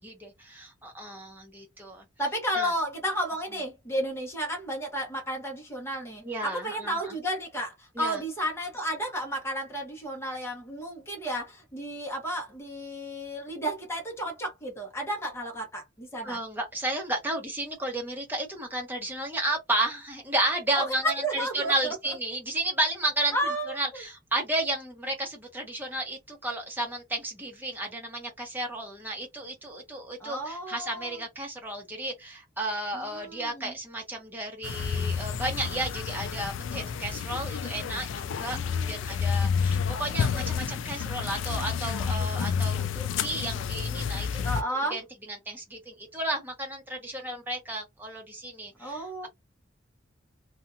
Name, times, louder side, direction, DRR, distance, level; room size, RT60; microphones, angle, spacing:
voice 1, 0.0-2.0 2.6-2.7 6.2-7.1 8.0-8.2 16.2-23.3 23.7-45.0 45.3-49.3, right 1 dB, 10° right, 1.1 m, -33 dB
voice 2, 2.2-16.4 20.8-21.9 23.3-24.0 30.2-31.2 32.9-33.7 38.5-39.1 44.4-45.0 48.8-49.3, equal, 15° left, 1.0 m, -32 dB
sound 1, 34.6-44.6, left 6 dB, 85° left, 0.3 m, -30 dB
2.6 x 2.5 x 2.5 m
head